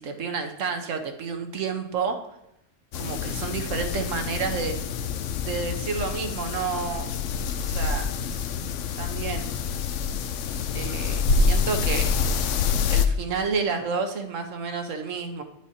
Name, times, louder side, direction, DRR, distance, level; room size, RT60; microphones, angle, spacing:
voice 1, 0.0-2.2 3.0-4.8 5.4-7.1 7.6-8.1 9.0-9.5 10.7-12.1 12.9-15.4, right 5 dB, 70° right, 5 dB, 1.3 m, -30 dB
sound 1, 2.9-13.1, left 5 dB, 70° left, 0.9 m, -26 dB
10.0 x 9.8 x 2.8 m, 0.82 s
omnidirectional pair, 1.4 m